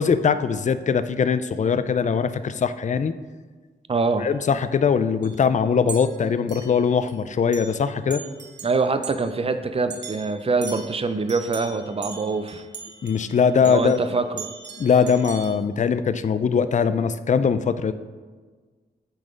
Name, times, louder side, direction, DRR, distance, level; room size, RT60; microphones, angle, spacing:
voice 1, 0.0-3.1 4.2-8.2 13.0-14.0 14.8-17.9, left 6 dB, 45° left, 12 dB, 0.4 m, -21 dB
voice 2, 3.9-4.3 8.6-12.6 13.6-14.5, right 4 dB, 35° right, 9 dB, 0.5 m, -24 dB
sound 1, 4.0-4.1 5.2-5.4 5.9-7.1 7.5-7.8 8.1-9.3 9.9-14.0 14.4-15.5, right 5 dB, 90° right, 0.8 m, -40 dB
9.2 x 4.0 x 5.2 m, 1.4 s
wide cardioid pair, 95°, 18 cm